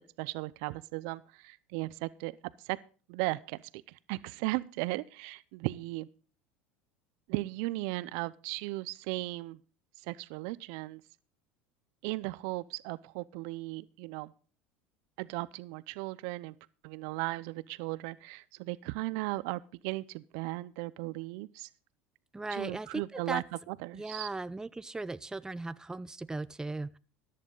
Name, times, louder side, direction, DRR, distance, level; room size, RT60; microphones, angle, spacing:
voice 1, 0.2-2.4 2.6-2.8 3.1-3.6 4.1-6.1 7.3-9.6 10.0-11.0 12.0-14.3 15.2-16.5 16.8-21.7 22.5-24.3, right 21 dB, 65° right, 19 dB, 0.6 m, -36 dB
voice 2, 22.3-23.4 23.9-27.0, right 3 dB, 10° right, 16 dB, 0.6 m, -37 dB
14.0 x 11.0 x 3.8 m, 0.37 s
hypercardioid pair, 85°, 6 cm